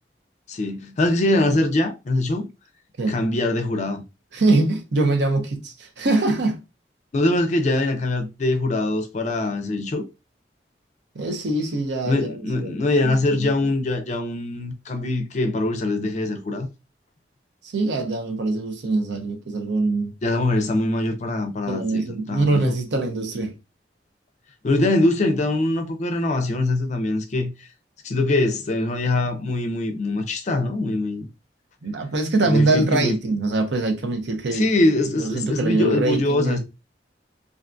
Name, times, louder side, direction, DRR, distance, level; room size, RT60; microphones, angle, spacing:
voice 1, 0.5-2.5 3.1-4.0 7.1-10.0 12.1-16.7 20.2-22.7 24.6-27.7 28.0-31.3 32.4-33.1 34.5-36.6, left 2 dB, 40° left, 0.4 m, -23 dB
voice 2, 4.3-6.6 11.1-13.5 17.6-20.1 21.7-23.5 31.8-34.7 35.2-36.6, right 2 dB, 80° right, 0.7 m, -23 dB
2.5 x 2.2 x 2.5 m
head